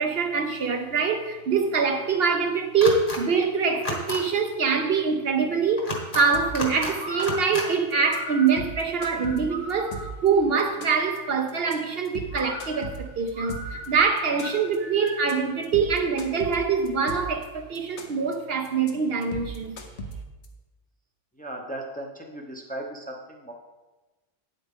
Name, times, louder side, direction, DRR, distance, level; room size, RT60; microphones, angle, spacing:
voice 1, 0.0-5.9 6.1-19.8, right 5 dB, 60° right, 0.9 m, -24 dB
sound 1, 2.8-3.2 3.7-4.2 5.8-6.2 6.5-6.9 7.2-7.7, left 1 dB, 45° left, 1.6 m, -31 dB
sound 2, 6.3-6.7 7.0-7.6 7.9-8.2 8.5-10.3 10.6-11.2 11.5-11.7 12.1-13.9 14.2-14.8 15.1-15.3 15.6-17.4 17.8-18.3 18.7-18.9 19.2-20.5, right 1 dB, 70° left, 1.2 m, -37 dB
sound 3, 7.0-10.3 12.3-15.4, right 1 dB, 80° right, 3.0 m, -38 dB
voice 2, 21.3-23.5, right 1 dB, 10° left, 0.7 m, -37 dB
9.1 x 7.9 x 3.6 m
omnidirectional pair, 1.2 m